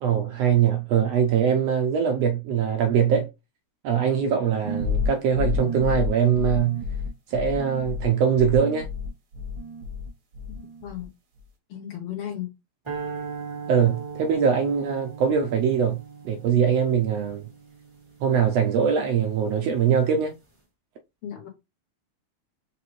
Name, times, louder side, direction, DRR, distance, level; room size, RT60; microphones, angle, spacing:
voice 1, 0.0-3.3 3.8-6.8 7.3-8.9 13.7-17.4 18.2-20.4, right 7 dB, 75° right, 1.5 m, -22 dB
sound 1, 4.6-10.1 10.3-11.1, left 4 dB, 50° right, 1.1 m, -29 dB
voice 2, 10.5-11.1 11.7-12.5 21.2-21.5, left 10 dB, 70° left, 1.5 m, -35 dB
sound 2, 12.9-19.2, right 5 dB, 30° right, 0.5 m, -39 dB
5.0 x 3.1 x 3.1 m
omnidirectional pair, 3.3 m